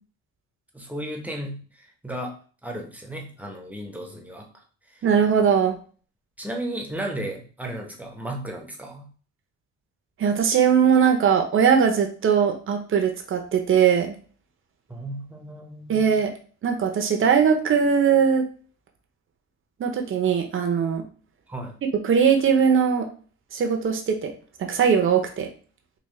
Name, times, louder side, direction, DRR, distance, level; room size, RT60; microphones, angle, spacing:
voice 1, 0.7-2.3 2.6-4.5 4.9-5.0 6.4-9.1 14.9-16.0 21.5-21.8, right 1 dB, 5° right, 1 dB, 0.8 m, -34 dB
voice 2, 5.0-5.8 10.2-14.1 15.9-16.3 16.6-18.4 19.8-21.0 22.0-23.1 23.5-24.3 24.6-25.5, right 7 dB, 45° right, 4 dB, 0.7 m, -20 dB
3.5 x 2.3 x 3.2 m, 0.41 s
cardioid pair, 90°, 30 cm